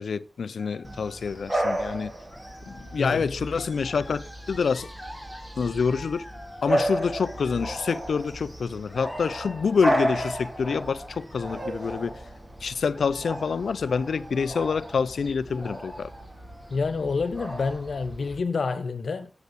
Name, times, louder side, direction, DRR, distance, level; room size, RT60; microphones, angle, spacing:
voice 1, 0.0-2.1 2.7-4.9 5.6-6.2 6.6-12.2 12.6-16.1, left 5 dB, 90° left, 0.5 m, -27 dB
sound 1, 0.6-2.0 2.3-3.3 3.5-8.3 8.9-12.2 12.8-16.9 17.2-18.0, equal, ahead, 2.4 m, -46 dB
Bark / Bird vocalization bird call bird song, 0.8-18.4, right 1 dB, 20° right, 2.4 m, -33 dB
voice 2, 3.0-3.3 16.7-19.3, left 4 dB, 70° left, 1.3 m, -28 dB
sound 2, 11.4-17.3, right 2 dB, 35° right, 4.2 m, -47 dB
8.2 x 8.1 x 6.0 m
wide cardioid pair, 125°, 0 cm